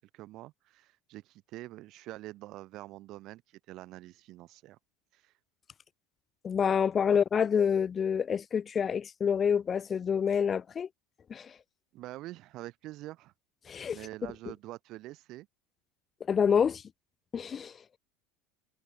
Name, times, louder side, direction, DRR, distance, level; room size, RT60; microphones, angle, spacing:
voice 1, 0.1-4.8 5.1-5.3 11.9-13.3 13.9-15.5, right 17 dB, 50° right, 4.6 m, -45 dB
voice 2, 6.4-10.9 11.3-11.5 13.7-14.0 16.3-16.8 17.3-17.7, left 7 dB, 25° left, 0.3 m, -27 dB
supercardioid pair, 135°, 0 cm